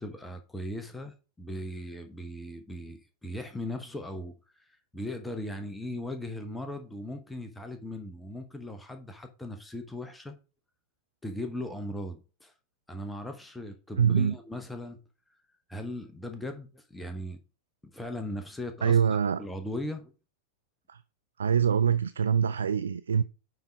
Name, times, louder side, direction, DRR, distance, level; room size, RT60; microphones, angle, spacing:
voice 1, 0.0-4.6 4.9-10.4 11.2-12.5 12.9-15.0 15.7-17.4 17.9-19.0 19.4-20.1, left 1 dB, 5° left, 1.0 m, -38 dB
voice 2, 14.0-14.3 18.8-19.4 20.9-21.0 21.4-23.2, right 7 dB, 70° right, 0.3 m, -24 dB
9.1 x 3.8 x 4.5 m
figure-of-eight pair, 90°, 0 cm